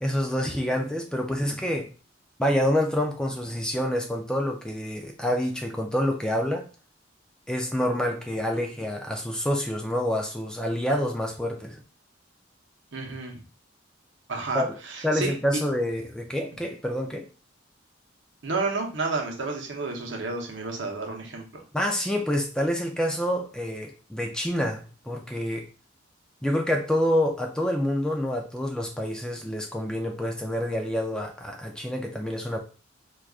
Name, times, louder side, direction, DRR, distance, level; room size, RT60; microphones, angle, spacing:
voice 1, 0.0-1.9 2.4-6.6 7.5-11.8 14.5-14.7 15.0-17.2 21.7-25.7 26.4-32.6, equal, 5° left, 1 dB, 0.3 m, -27 dB
voice 2, 12.9-13.4 14.3-15.3 18.4-21.6, right 3 dB, 65° right, 2 dB, 0.7 m, -31 dB
4.7 x 2.3 x 2.3 m, 0.36 s
head